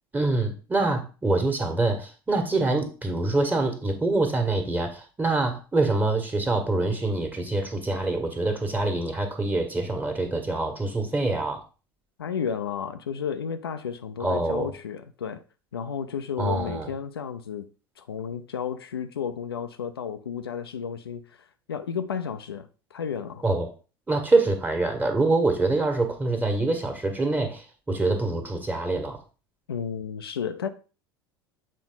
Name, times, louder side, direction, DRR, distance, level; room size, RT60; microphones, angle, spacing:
voice 1, 0.1-11.6 14.2-14.7 16.4-16.9 23.4-23.7 24.1-29.2, right 2 dB, 15° right, 1.7 m, -25 dB
voice 2, 12.2-15.4 15.7-17.7 18.0-21.4 21.7-23.4 29.7-30.7, left 7 dB, 75° left, 0.6 m, -32 dB
7.5 x 4.2 x 3.9 m
figure-of-eight pair, 75°, 13 cm